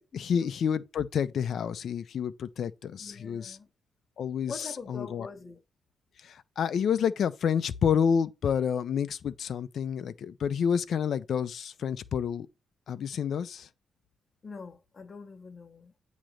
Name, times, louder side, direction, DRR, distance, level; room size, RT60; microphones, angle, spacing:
voice 1, 0.0-3.6 4.2-4.5 4.9-5.3 6.2-12.5 12.9-13.7, left 7 dB, 50° left, 0.6 m, -29 dB
voice 2, 3.0-3.7 4.5-5.6 14.4-15.9, left 4 dB, 25° left, 1.1 m, -44 dB
8.9 x 3.0 x 6.4 m
cardioid pair, 165°, 0 cm